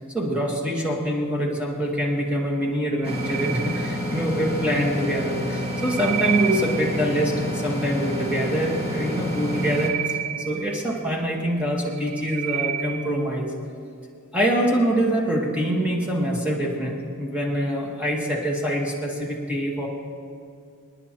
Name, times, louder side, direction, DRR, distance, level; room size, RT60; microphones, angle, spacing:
voice 1, 0.1-13.5 14.3-19.9, equal, 5° right, -3 dB, 1.4 m, -25 dB
sound 1, 2.9-4.4 5.4-7.2 9.2-11.3 11.8-13.3, right 10 dB, 65° right, 0.5 m, -31 dB
sound 2, 3.0-9.9, equal, 25° right, 1.7 m, -29 dB
27.5 x 10.0 x 2.9 m, 2.5 s
head